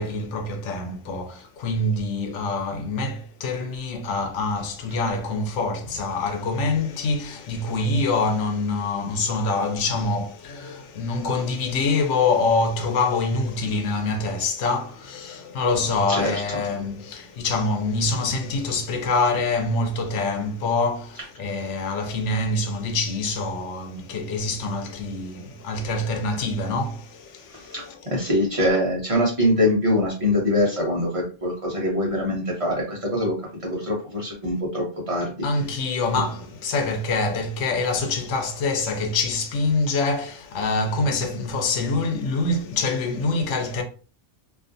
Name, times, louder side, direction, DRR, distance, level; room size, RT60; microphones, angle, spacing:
voice 1, 0.0-28.1 35.4-43.8, left 3 dB, 85° left, 0.9 m, -25 dB
voice 2, 27.5-35.4, left 1 dB, 40° right, 0.6 m, -24 dB
2.4 x 2.3 x 2.5 m
omnidirectional pair, 1.2 m